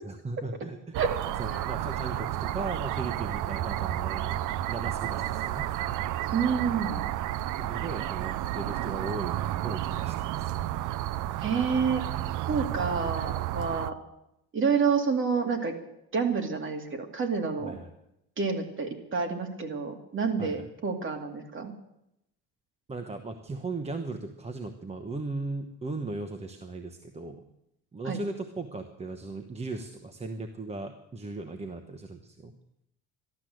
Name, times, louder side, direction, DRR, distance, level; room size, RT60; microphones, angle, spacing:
voice 1, 0.0-0.9 1.4-4.4 4.7-5.7 7.6-10.5 17.6-17.9 20.4-20.6 22.9-27.4 27.9-32.5, right 3 dB, 20° right, 6 dB, 1.1 m, -37 dB
sound 1, 0.9-13.9, right 13 dB, 70° right, 0.6 m, -31 dB
voice 2, 6.3-7.0 11.4-12.0 12.5-13.9 14.5-15.7 16.1-17.7 18.4-21.7 28.0-28.2, right 5 dB, 40° right, 4 dB, 2.6 m, -28 dB
14.0 x 12.0 x 7.8 m, 0.81 s
cardioid pair, 135°, 32 cm